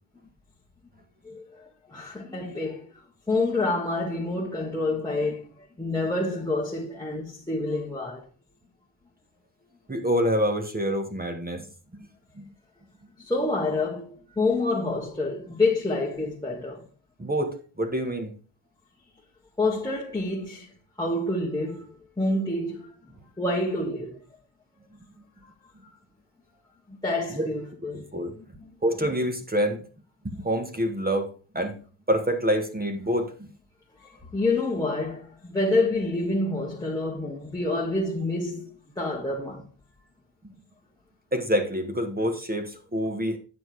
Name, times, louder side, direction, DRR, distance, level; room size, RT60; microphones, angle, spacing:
voice 1, 1.2-2.8 3.3-5.5 5.8-8.2 13.2-16.9 19.6-20.7 21.0-21.8 22.2-22.9 23.4-24.2 26.9-28.1 28.3-28.4 34.0-39.7, left 2 dB, 10° left, 1.6 m, -28 dB
voice 2, 9.9-11.6 11.9-12.1 12.4-12.5 17.2-18.3 27.3-27.5 28.1-28.3 28.8-29.8 30.2-31.8 32.1-33.3 41.3-43.4, equal, 20° right, 1.4 m, -26 dB
9.4 x 6.3 x 4.7 m
cardioid pair, 115°, 50 cm